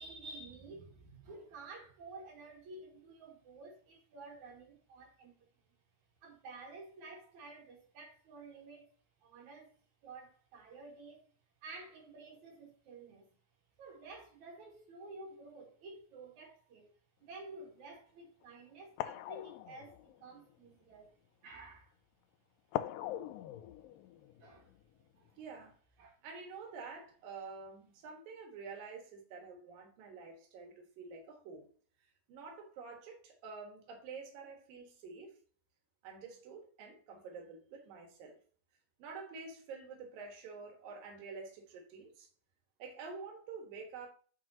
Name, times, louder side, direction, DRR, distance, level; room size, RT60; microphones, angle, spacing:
voice 1, 0.0-5.7 6.2-8.9 9.2-9.7 10.0-11.3 11.6-13.3 13.8-16.9 17.2-21.1 21.4-22.0 24.4-24.7 25.2-25.4 26.0-26.2, right 3 dB, 55° right, 2.9 m, -51 dB
sound 1, 17.4-17.6 18.4-18.5 19.0-20.7 22.7-25.3 25.6-25.7, left 13 dB, 80° left, 2.1 m, -42 dB
voice 2, 25.4-25.7 26.2-31.7 32.3-35.3 36.0-38.4 39.0-42.3 42.8-44.1, right 4 dB, 75° right, 3.3 m, -48 dB
9.0 x 6.0 x 2.8 m
omnidirectional pair, 4.2 m